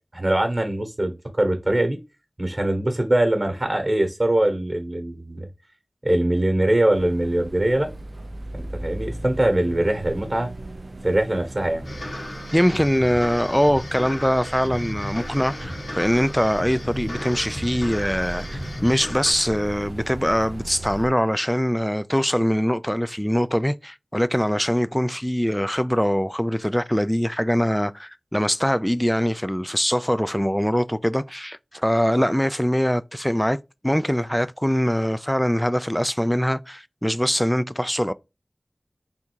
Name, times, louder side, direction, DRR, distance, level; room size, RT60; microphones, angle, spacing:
voice 1, 0.1-2.0 2.4-5.5 6.0-7.9 8.5-10.5 11.0-11.9, right 1 dB, 45° right, 1.1 m, -22 dB
sound 1, 6.9-21.1, right 2 dB, 70° right, 0.4 m, -37 dB
sound 2, 11.8-19.3, left 1 dB, 75° left, 1.4 m, -35 dB
voice 2, 12.5-33.6 33.8-38.1, equal, 5° left, 0.3 m, -22 dB
3.6 x 2.7 x 4.4 m
wide cardioid pair, 45°, 0 cm